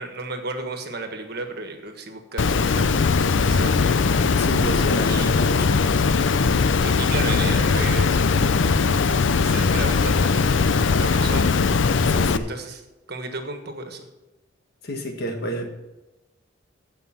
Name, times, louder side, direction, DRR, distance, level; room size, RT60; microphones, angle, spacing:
voice 1, 0.0-4.0 5.0-5.5 6.8-8.6 9.1-10.3 10.6-11.5 12.5-12.8 13.1-14.0, right 3 dB, 55° right, 5 dB, 1.5 m, -34 dB
Water, 2.4-12.4, left 4 dB, 80° left, 0.5 m, -20 dB
voice 2, 4.4-5.8 12.0-12.5 14.8-15.7, right 1 dB, 55° left, 4 dB, 1.7 m, -29 dB
15.0 x 5.6 x 5.9 m, 1.0 s
head